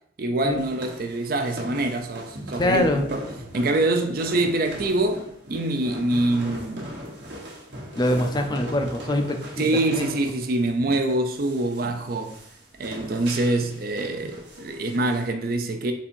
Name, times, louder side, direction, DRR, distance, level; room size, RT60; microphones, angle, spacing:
voice 1, 0.2-3.2 3.5-6.9 8.1-8.2 9.6-12.4 12.8-15.9, right 2 dB, 50° right, 0.5 m, -25 dB
sound 1, 0.6-15.3, equal, 70° right, 1.1 m, -40 dB
voice 2, 2.6-3.1 7.9-10.0, left 1 dB, 20° left, 0.4 m, -24 dB
4.1 x 2.6 x 4.3 m
head